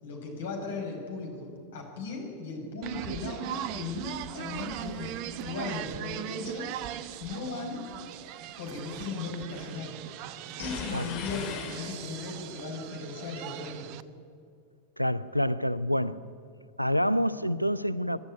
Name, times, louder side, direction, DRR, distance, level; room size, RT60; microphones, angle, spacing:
voice 1, 0.0-6.9 7.2-7.8 8.6-10.0 10.6-13.9, left 3 dB, 60° left, 5.2 m, -37 dB
sound 1, 2.8-14.0, right 12 dB, 45° right, 0.7 m, -39 dB
sound 2, 10.6-12.4, left 7 dB, 40° left, 2.5 m, -39 dB
voice 2, 15.0-16.2 16.8-18.2, equal, 90° right, 0.6 m, -27 dB
24.5 x 11.5 x 9.7 m
figure-of-eight pair, 90°, 0 cm